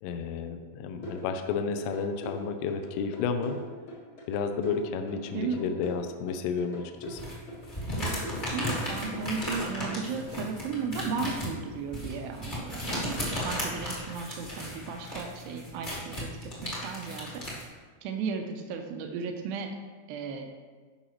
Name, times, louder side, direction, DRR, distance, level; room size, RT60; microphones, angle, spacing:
voice 1, 0.0-3.6 4.3-7.2, left 5 dB, 80° left, 7 dB, 2.5 m, -31 dB
sound 1, 1.0-10.4, equal, 55° left, 1.5 m, -42 dB
sound 2, 7.1-17.6, left 1 dB, 30° left, 0.9 m, -35 dB
voice 2, 8.5-17.4 18.0-19.7 20.1-20.5, right 5 dB, 85° right, 4 dB, 2.0 m, -35 dB
12.5 x 5.6 x 3.1 m, 1.4 s
omnidirectional pair, 4.9 m